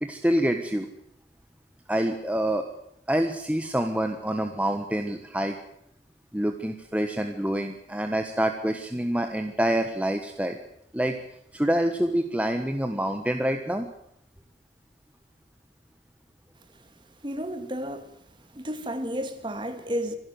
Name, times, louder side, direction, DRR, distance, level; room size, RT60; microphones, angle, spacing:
voice 1, 0.0-0.9 1.9-2.7 3.1-5.6 6.3-10.6 10.9-11.2 11.5-13.9, right 1 dB, 10° right, 1.3 m, -26 dB
voice 2, 17.2-18.1 18.6-20.2, equal, 25° right, 2.3 m, -32 dB
26.0 x 12.0 x 9.5 m
head